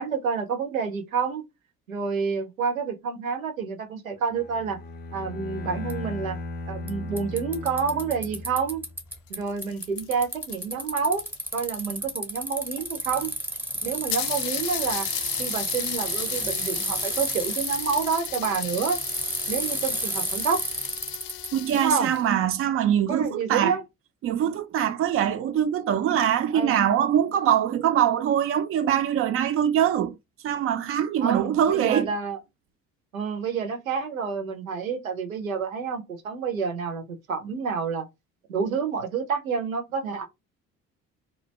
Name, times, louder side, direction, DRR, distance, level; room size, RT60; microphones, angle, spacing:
voice 1, 0.0-1.5 1.9-4.8 5.1-6.4 6.7-8.8 9.3-11.2 11.5-13.3 13.8-15.1 15.4-19.0 19.5-20.6 21.7-22.1 23.1-23.8 26.5-26.8 31.2-32.4 33.1-38.1 38.5-40.3, right 5 dB, 85° right, 0.6 m, -28 dB
Bowed string instrument, 4.3-9.1, left 2 dB, 25° left, 0.5 m, -37 dB
Bicycle, 5.9-6.0 6.9-7.0 7.2-9.4 9.6-21.5, right 1 dB, 5° right, 0.7 m, -31 dB
sound 1, 9.1-11.9 12.8-12.9 13.1-13.2 13.5-13.6 14.1-22.3, left 11 dB, 70° left, 0.5 m, -36 dB
voice 2, 21.5-23.8 24.2-30.2 30.4-32.1, right 10 dB, 35° right, 0.4 m, -23 dB
2.4 x 2.1 x 3.0 m
figure-of-eight pair, 50°, 40 cm